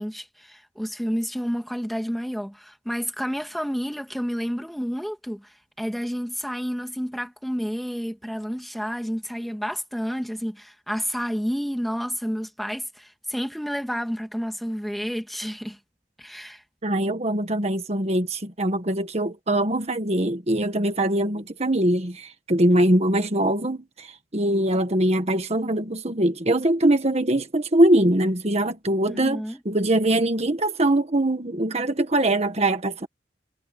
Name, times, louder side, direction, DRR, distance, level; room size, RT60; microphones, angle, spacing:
voice 1, 0.0-15.8 16.2-16.6 29.1-29.6, equal, ahead, 2.2 m, -30 dB
voice 2, 16.8-33.1, right 1 dB, 35° right, 1.6 m, -22 dB
head